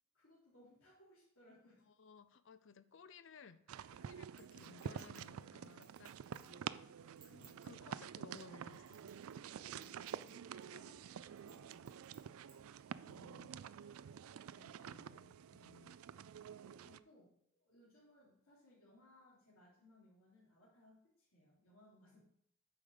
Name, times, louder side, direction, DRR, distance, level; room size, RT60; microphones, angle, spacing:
voice 1, 0.1-1.8 6.4-7.0 9.6-12.4 16.6-22.2, left 1 dB, 80° left, -9 dB, 3.3 m, -66 dB
voice 2, 1.8-6.8 7.2-9.1 13.0-13.5 13.8-14.0 14.6-16.0, left 5 dB, 60° left, 14 dB, 0.5 m, -60 dB
sound 1, 3.7-17.0, right 8 dB, 80° right, 0.3 m, -49 dB
Chink clink, 4.4-6.6 7.0-7.7 8.3-9.4 9.7-10.3 10.6-10.7 11.4-12.6 13.1-13.2, right 6 dB, 20° right, 1.9 m, -64 dB
8.6 x 5.1 x 6.5 m, 0.69 s
head